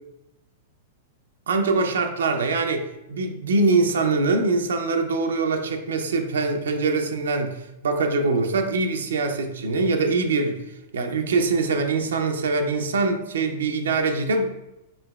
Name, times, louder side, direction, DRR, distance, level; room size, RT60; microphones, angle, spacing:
voice 1, 1.5-10.6 10.9-14.5, right 3 dB, 85° right, 4 dB, 0.4 m, -23 dB
3.9 x 3.0 x 2.2 m, 0.92 s
hypercardioid pair, 120°, 0 cm